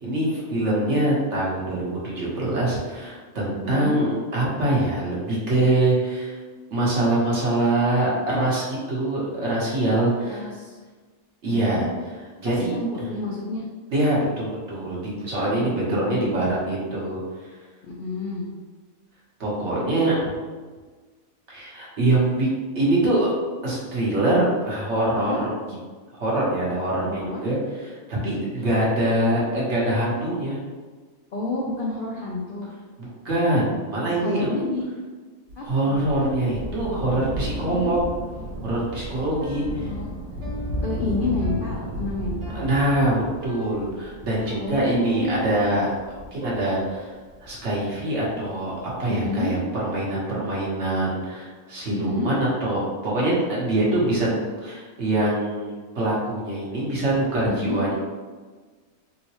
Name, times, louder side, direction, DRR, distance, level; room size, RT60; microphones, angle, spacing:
voice 1, 0.0-6.3 6.7-10.5 11.4-11.9 12.4-12.7 13.9-17.2 19.4-20.3 21.5-23.3 23.6-25.6 26.2-27.6 27.8-30.6 33.0-34.5 35.6-38.0 38.6-39.9 42.5-45.9 46.3-47.1 47.4-48.7 49.0-57.9, right 1 dB, 60° right, -6 dB, 1.2 m, -24 dB
voice 2, 3.6-4.0 10.3-10.8 11.5-11.9 12.4-13.7 15.6-16.3 17.8-18.5 19.8-20.0 25.1-25.4 27.1-27.4 31.3-32.7 34.2-34.8 35.6-36.0 37.7-37.9 39.5-40.1 40.8-42.7 44.6-45.4 49.1-49.5 51.9-52.3 57.5-57.8, left 3 dB, 70° left, -3 dB, 0.5 m, -30 dB
Thunder, 35.5-48.4 49.2-49.3, equal, 85° right, 1.4 m, -34 dB
Piano, 39.4-47.3, equal, 35° right, 0.5 m, -41 dB
3.8 x 2.1 x 2.9 m, 1.4 s
omnidirectional pair, 1.4 m